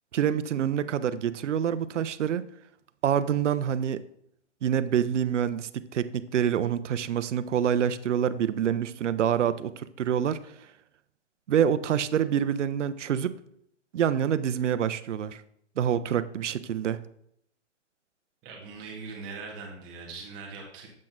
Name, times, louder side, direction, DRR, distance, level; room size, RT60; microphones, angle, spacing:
voice 1, 0.1-2.4 3.0-4.0 4.6-10.4 11.5-13.3 13.9-15.4 15.8-17.0, right 9 dB, 75° right, 14 dB, 0.6 m, -26 dB
voice 2, 18.4-20.9, right 4 dB, 10° right, -1 dB, 0.7 m, -41 dB
7.4 x 5.8 x 2.5 m, 0.71 s
hypercardioid pair, 155°, 36 cm